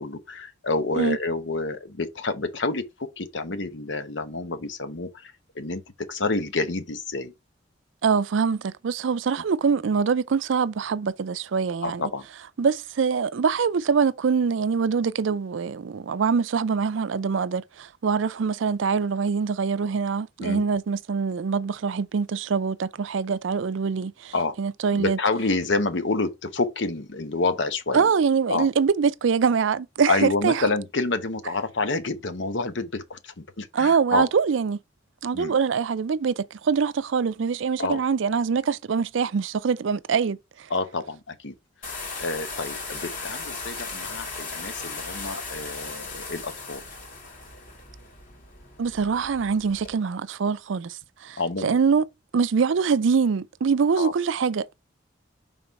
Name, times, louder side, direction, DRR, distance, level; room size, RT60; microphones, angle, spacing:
voice 1, 0.0-7.3 11.8-12.3 20.4-20.6 24.3-24.5 24.9-28.1 28.5-28.7 30.1-34.3 35.3-35.5 37.8-38.0 40.7-41.5 42.2-46.8 51.4-51.8 54.0-54.1, left 3 dB, 65° left, 1.0 m, -28 dB
voice 2, 8.0-12.0 12.6-25.2 27.9-30.6 33.7-34.8 35.2-40.7 48.8-52.0 52.3-54.7, right 5 dB, 75° right, 0.4 m, -24 dB
sound 1, 41.8-49.9, left 3 dB, 45° left, 2.3 m, -37 dB
5.4 x 3.9 x 4.5 m
head